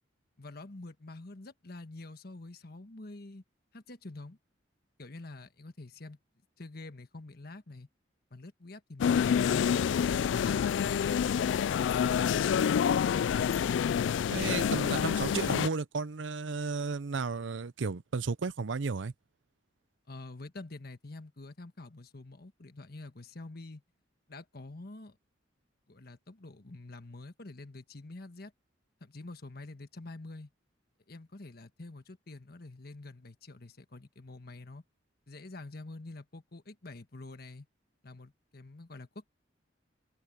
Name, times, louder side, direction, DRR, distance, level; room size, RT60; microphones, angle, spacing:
voice 1, 0.4-3.4 3.7-4.4 5.0-6.2 6.6-7.9 8.3-10.1 20.1-23.8 24.3-25.2 25.9-28.5 29.0-30.5 31.1-34.8 35.3-37.7 38.0-39.2, left 2 dB, 55° left, 1.4 m, -47 dB
sound 1, 9.0-15.7, left 8 dB, 80° left, 0.3 m, -27 dB
voice 2, 13.3-13.7 14.3-19.1, right 4 dB, 85° right, 0.6 m, -34 dB
head